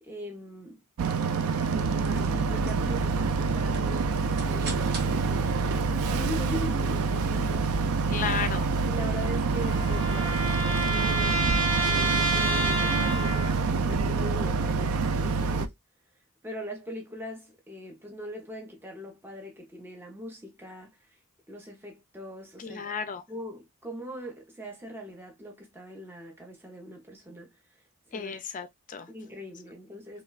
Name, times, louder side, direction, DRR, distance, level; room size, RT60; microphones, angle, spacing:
voice 1, 0.0-0.8 1.7-8.1 8.9-11.5 11.8-15.7 16.4-21.2 21.5-22.8 23.3-27.8 28.1-28.4 29.1-30.2, equal, 10° right, 0.6 m, -41 dB
Boat Water vehicle, 1.0-15.7, right 4 dB, 75° right, 0.4 m, -27 dB
sound 1, 3.7-7.0, right 4 dB, 50° right, 0.8 m, -46 dB
voice 2, 8.1-8.7 22.6-23.2 28.1-29.1, left 6 dB, 35° left, 0.4 m, -33 dB
sound 2, 9.0-13.7, right 2 dB, 30° right, 1.1 m, -29 dB
3.0 x 2.1 x 2.2 m
head